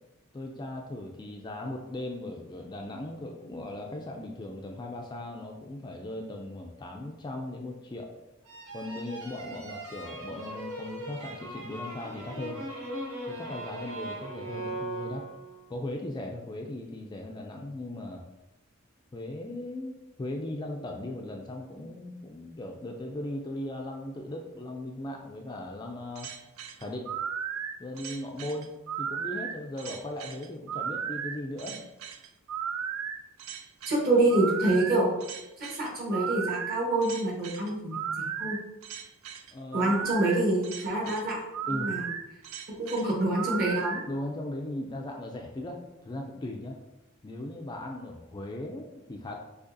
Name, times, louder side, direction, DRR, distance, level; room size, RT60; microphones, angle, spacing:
voice 1, 0.3-8.1 8.7-12.6 13.3-15.3 15.7-18.2 19.1-26.3 26.8-27.1 27.8-31.8 39.5-40.0 41.7-41.9 44.1-46.8 47.2-49.3, left 1 dB, 20° left, 1 dB, 0.3 m, -38 dB
sound 1, 8.5-15.6, right 1 dB, 90° right, 0.9 m, -39 dB
sound 2, 26.2-44.0, right 7 dB, 75° right, 0.4 m, -35 dB
voice 2, 33.9-35.1 35.6-38.6 39.7-41.4 41.7-42.1 42.8-44.0, right 2 dB, 45° right, -3 dB, 1.3 m, -26 dB
6.4 x 2.8 x 2.6 m, 0.98 s
head